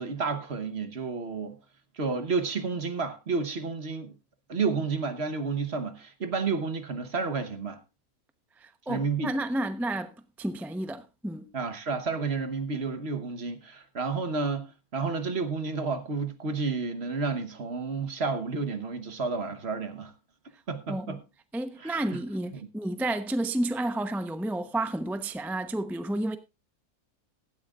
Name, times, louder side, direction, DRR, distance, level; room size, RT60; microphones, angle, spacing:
voice 1, 0.0-1.6 2.0-4.1 4.5-7.8 8.9-9.3 11.5-20.1 20.7-21.2 21.8-22.2 22.5-22.7, right 4 dB, 45° right, 1.4 m, -31 dB
voice 2, 8.9-10.1 10.4-11.5 20.9-21.2 21.5-26.4, right 1 dB, ahead, 0.6 m, -31 dB
16.5 x 12.5 x 2.4 m
omnidirectional pair, 1.5 m